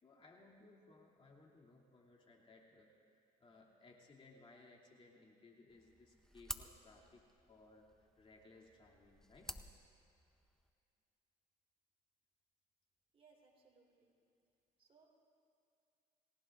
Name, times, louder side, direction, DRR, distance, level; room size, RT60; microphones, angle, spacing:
voice 1, 0.0-9.5, left 3 dB, 30° left, -2 dB, 2.7 m, -63 dB
sound 1, 5.7-10.7, equal, 5° left, 0.7 m, -53 dB
voice 2, 13.1-14.1 14.8-15.1, right 4 dB, 35° right, -1 dB, 4.1 m, -68 dB
30.0 x 18.5 x 2.6 m, 2.5 s
cardioid pair, 110°, 17 cm